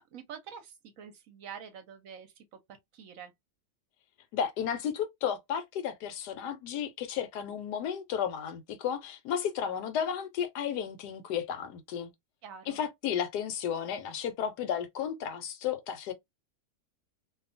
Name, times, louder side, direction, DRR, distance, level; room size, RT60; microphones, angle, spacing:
voice 1, 0.1-2.5 2.9-3.3 12.4-12.8, right 7 dB, 65° right, 1.0 m, -46 dB
voice 2, 4.3-12.1 12.7-16.1, left 8 dB, 90° left, 1.2 m, -33 dB
2.8 x 2.3 x 2.5 m
omnidirectional pair, 1.7 m